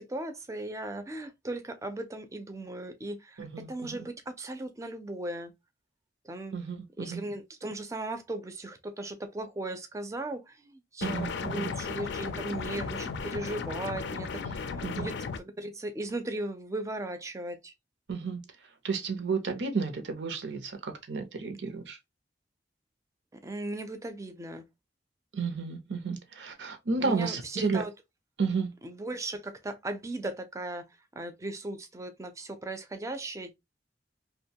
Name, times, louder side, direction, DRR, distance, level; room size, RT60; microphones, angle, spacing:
voice 1, 0.0-5.5 6.3-6.5 7.0-15.1 15.6-17.7 23.4-24.7 27.0-27.9 28.8-30.8 31.2-33.5, right 2 dB, 15° right, 0.4 m, -37 dB
voice 2, 3.4-4.1 6.5-7.2 11.0-11.7 14.4-14.5 14.8-15.1 18.1-22.0 25.3-27.8 28.4-28.7, right 4 dB, 85° right, 0.6 m, -32 dB
sound 1, 11.0-15.4, left 5 dB, 80° left, 0.4 m, -35 dB
2.5 x 2.2 x 2.7 m
head